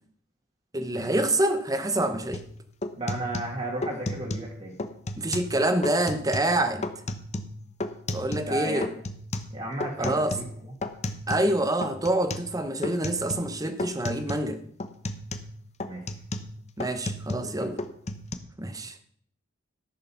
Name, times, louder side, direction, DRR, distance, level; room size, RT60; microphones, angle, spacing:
voice 1, 0.7-2.4 5.2-6.8 8.1-8.9 10.0-10.4 11.3-14.6 16.8-17.7 18.6-18.9, right 1 dB, 20° right, 1.0 m, -26 dB
sound 1, 2.3-2.5 2.8-4.5 4.8-5.6 5.8-6.5 6.8-8.6 8.8-11.5 11.8-12.5 12.8-13.5 13.8-14.5 14.8-17.5 17.8-18.3, left 1 dB, 35° left, 1.0 m, -34 dB
voice 2, 3.0-4.8 8.5-8.8 9.5-10.4 15.9-16.0 17.6-17.7, right 1 dB, 35° right, 2.2 m, -33 dB
14.5 x 6.6 x 5.8 m
head